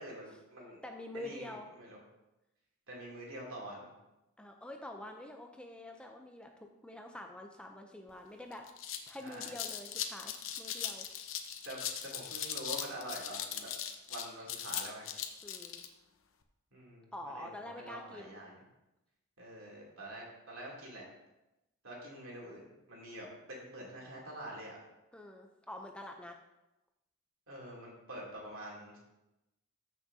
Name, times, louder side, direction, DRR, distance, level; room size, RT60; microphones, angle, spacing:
voice 1, 0.0-0.8 1.1-2.0 2.9-3.9 9.2-9.5 11.6-13.7 14.1-15.1 16.7-18.5 19.4-21.0 21.8-22.6 22.9-24.7 27.5-29.0, right 1 dB, 70° right, -3 dB, 2.9 m, -46 dB
voice 2, 0.8-1.7 4.4-8.7 9.1-11.1 15.4-15.8 17.1-18.4 25.1-26.4, left 1 dB, 5° left, 3 dB, 0.5 m, -46 dB
sound 1, 8.1-8.2 8.5-15.9, left 9 dB, 60° left, 0.8 m, -39 dB
14.0 x 6.2 x 2.8 m, 0.95 s
head